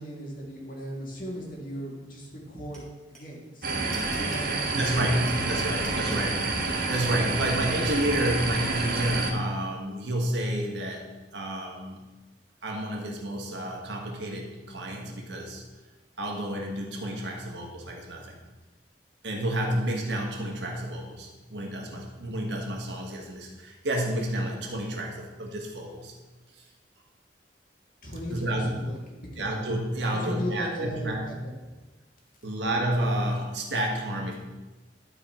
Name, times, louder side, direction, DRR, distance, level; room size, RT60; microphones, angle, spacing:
voice 1, 0.0-2.8 3.1-6.3 28.0-28.6 28.8-29.4 30.1-31.5, equal, 50° left, -1 dB, 2.0 m, -38 dB
sound 1, 2.7-2.8 3.1-3.2 3.4-4.5 4.8-6.2, right 2 dB, 5° left, 3.0 m, -42 dB
sound 2, 3.6-9.3, right 3 dB, 55° right, 1.1 m, -28 dB
voice 2, 4.7-11.1 11.3-12.0 12.6-15.6 16.2-18.4 19.2-26.1 26.6-26.7 28.3-28.9 29.4-31.2 32.4-34.3, right 1 dB, 80° right, 0 dB, 1.6 m, -30 dB
11.5 x 4.6 x 4.4 m, 1.2 s
head